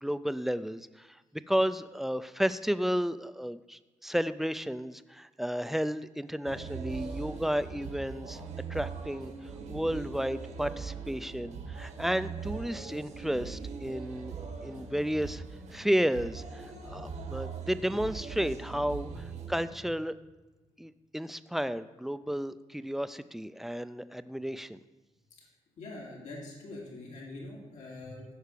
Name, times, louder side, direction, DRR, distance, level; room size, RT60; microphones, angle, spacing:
voice 1, 0.0-1.2 1.5-8.4 8.7-15.4 15.7-20.2 20.8-24.8, equal, ahead, 14 dB, 0.3 m, -32 dB
sound 1, 6.4-19.7, right 5 dB, 85° right, 1.9 m, -41 dB
voice 2, 25.8-28.2, left 2 dB, 85° left, -4 dB, 3.3 m, -44 dB
15.5 x 5.7 x 6.7 m, 1.2 s
wide cardioid pair, 160°, 12 cm